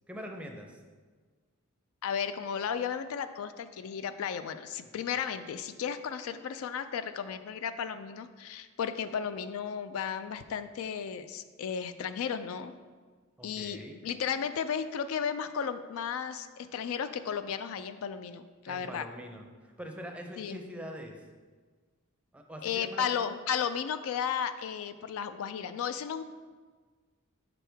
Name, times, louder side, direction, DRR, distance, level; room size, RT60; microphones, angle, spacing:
voice 1, 0.1-0.8 13.4-14.0 18.6-21.3 22.3-23.3, equal, 5° right, 2 dB, 0.5 m, -43 dB
voice 2, 2.0-12.7 13.4-19.0 20.4-20.6 22.6-26.2, left 7 dB, 70° left, 11 dB, 0.3 m, -34 dB
6.0 x 4.6 x 3.4 m, 1.5 s
head